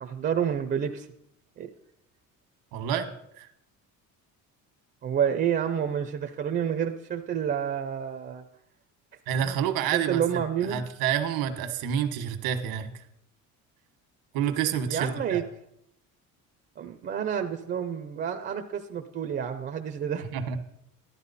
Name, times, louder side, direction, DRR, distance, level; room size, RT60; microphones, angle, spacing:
voice 1, 0.0-1.1 1.6-1.7 5.0-8.4 9.4-9.6 9.9-10.8 14.9-15.4 16.8-20.2, right 8 dB, 30° right, 6 dB, 0.6 m, -29 dB
voice 2, 2.7-3.1 3.4-3.5 9.3-10.2 10.6-12.9 14.3-15.4 20.3-20.6, right 9 dB, 80° right, 7 dB, 1.4 m, -28 dB
13.5 x 11.5 x 4.1 m, 0.78 s
cardioid pair, 180°, 35 cm